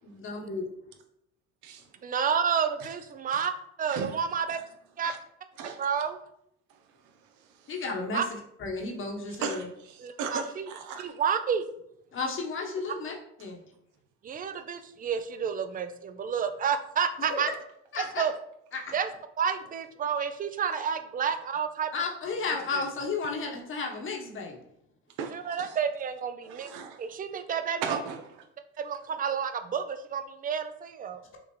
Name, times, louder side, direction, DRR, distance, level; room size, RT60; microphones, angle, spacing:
voice 1, 0.1-0.7 7.7-8.2 8.6-9.6 12.1-13.6 17.3-17.4 17.9-18.2 18.7-18.9 21.9-24.6, left 4 dB, 40° left, 1 dB, 1.1 m, -33 dB
voice 2, 2.0-3.5 3.8-4.6 5.0-5.1 5.8-6.2 8.1-8.2 10.0-10.7 11.0-11.6 14.2-17.5 18.2-18.3 18.9-19.1 19.4-21.9 25.3-26.7 27.0-28.0 28.8-31.2, right 7 dB, 30° right, 9 dB, 0.4 m, -30 dB
voice 3, 7.0-7.8 9.3-11.1 22.7-22.9 25.2-25.8 26.4-27.0 27.8-28.5, right 6 dB, 80° right, 6 dB, 0.8 m, -37 dB
6.2 x 2.4 x 3.1 m, 0.75 s
supercardioid pair, 85°, 30 cm